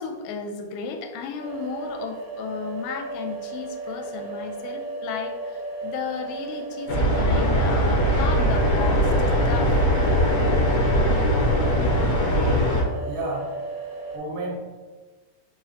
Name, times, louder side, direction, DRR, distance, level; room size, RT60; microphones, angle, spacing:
voice 1, 0.0-9.9, left 6 dB, 85° left, 4 dB, 2.2 m, -34 dB
sound 1, 1.4-14.2, right 3 dB, 60° right, 2.8 m, -35 dB
sound 2, 6.9-12.8, equal, 65° left, 1.8 m, -21 dB
voice 2, 12.3-12.6 12.9-13.5 14.1-14.8, right 2 dB, 85° right, -5 dB, 2.8 m, -32 dB
5.7 x 3.1 x 2.8 m, 1.3 s
omnidirectional pair, 3.8 m